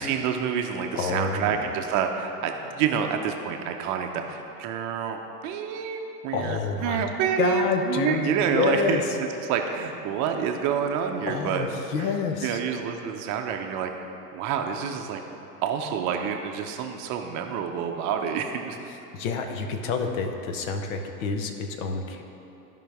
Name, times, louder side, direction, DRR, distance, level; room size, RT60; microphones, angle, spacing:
voice 1, 0.0-11.7 12.0-12.1 12.4-13.9 14.3-15.2 15.6-18.8, right 7 dB, 35° right, 4 dB, 0.7 m, -28 dB
voice 2, 0.9-1.7 6.3-7.1 7.4-9.2 11.3-12.6 19.1-22.2, left 5 dB, 55° left, 5 dB, 1.1 m, -28 dB
14.5 x 5.3 x 3.5 m, 2.9 s
hypercardioid pair, 95°, 49 cm